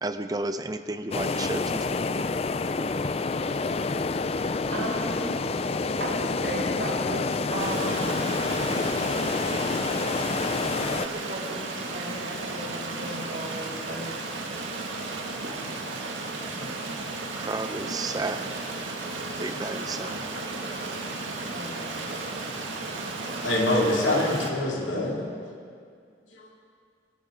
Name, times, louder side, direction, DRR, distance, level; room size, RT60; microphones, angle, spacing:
voice 1, 0.0-2.0 16.5-17.0 17.4-18.5 19.4-20.6, right 2 dB, 20° right, 9 dB, 0.6 m, -33 dB
sound 1, 1.1-11.1, left 3 dB, 35° left, 0.4 m, -28 dB
voice 2, 4.7-5.4 6.0-8.4 11.2-14.3 15.3-15.5 21.5-22.1, right 1 dB, 75° right, -5 dB, 3.3 m, -36 dB
Stream, 7.6-24.5, right 3 dB, 90° right, 2.0 m, -34 dB
voice 3, 23.4-25.3 26.3-26.5, left 1 dB, 85° left, -3 dB, 2.6 m, -25 dB
26.0 x 13.0 x 3.8 m, 2.2 s
head